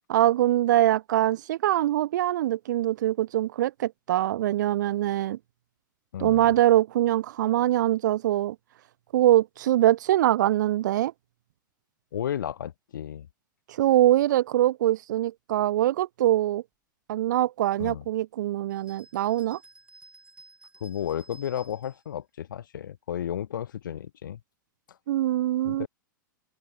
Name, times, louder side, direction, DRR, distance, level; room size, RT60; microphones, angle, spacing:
voice 1, 0.1-5.4 6.2-8.6 9.1-11.1 13.7-16.6 17.1-19.6 25.1-25.9, right 13 dB, 65° right, 0.9 m, -23 dB
voice 2, 6.1-6.5 12.1-13.3 17.8-18.0 20.8-24.4 25.6-25.9, left 10 dB, 70° left, 4.2 m, -33 dB
sound 1, 18.7-22.0, right 3 dB, 10° right, 3.1 m, -53 dB
hypercardioid pair, 105°, 11 cm